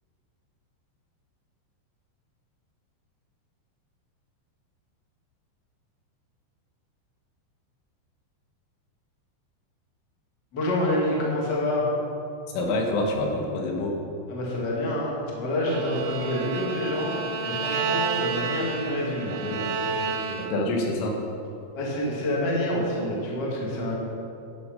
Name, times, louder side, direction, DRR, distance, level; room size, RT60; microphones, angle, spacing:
voice 1, 10.5-11.9 14.3-20.4 21.7-24.0, left 1 dB, 70° left, -4 dB, 1.0 m, -28 dB
voice 2, 12.5-14.0 20.4-21.2, left 2 dB, 85° left, 1 dB, 3.9 m, -26 dB
Bowed string instrument, 15.6-20.8, right 5 dB, 80° right, 3.0 m, -30 dB
11.0 x 8.3 x 5.3 m, 2.6 s
omnidirectional pair, 5.6 m